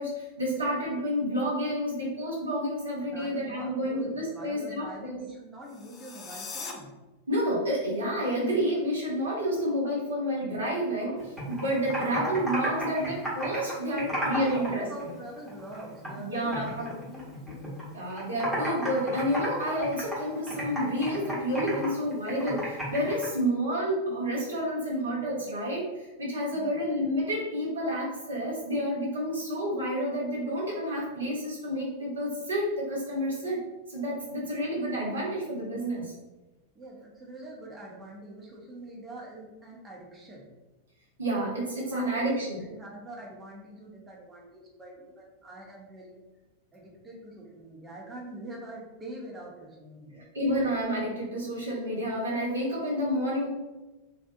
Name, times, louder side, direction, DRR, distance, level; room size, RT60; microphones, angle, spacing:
voice 1, 0.0-5.2 7.3-14.9 16.1-17.0 17.9-33.6 33.9-36.1 41.2-42.7 50.3-53.5, equal, 70° right, -4 dB, 0.8 m, -29 dB
voice 2, 3.1-6.9 13.8-17.4 26.5-26.8 36.7-40.5 41.8-46.2 46.7-50.3, right 1 dB, 20° right, -2 dB, 0.7 m, -44 dB
sound 1, 5.6-6.7, left 5 dB, 30° left, 0.4 m, -40 dB
Computer keyboard, 11.1-14.7 15.0-16.2 16.5-17.8 18.1-23.3, equal, ahead, 1.0 m, -34 dB
2.5 x 2.2 x 2.6 m, 1.1 s
figure-of-eight pair, 90°, 0 cm